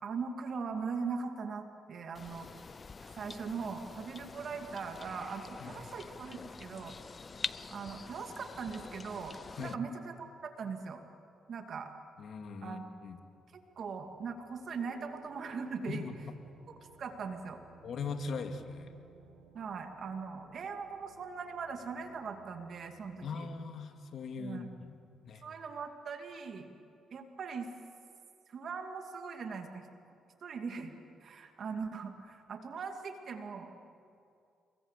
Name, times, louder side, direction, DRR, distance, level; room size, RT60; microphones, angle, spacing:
voice 1, 0.0-2.5 3.1-7.0 7.7-11.1 11.5-11.9 12.6-12.9 13.5-16.1 17.0-17.6 19.5-23.5 24.4-24.7 25.4-26.7 27.1-27.7 28.5-29.9 30.4-30.9 31.2-33.8, right 5 dB, 55° right, 6 dB, 2.5 m, -40 dB
sound 1, 2.1-9.7, left 4 dB, 35° left, 0.6 m, -46 dB
voice 2, 12.2-13.2 15.9-16.1 17.8-18.9 23.2-25.0 25.2-25.4, left 5 dB, 60° left, 6 dB, 2.3 m, -40 dB
sound 2, 13.5-23.4, right 6 dB, 85° right, 4.4 m, -60 dB
27.5 x 23.0 x 8.3 m, 2.5 s
cardioid pair, 90°, 0 cm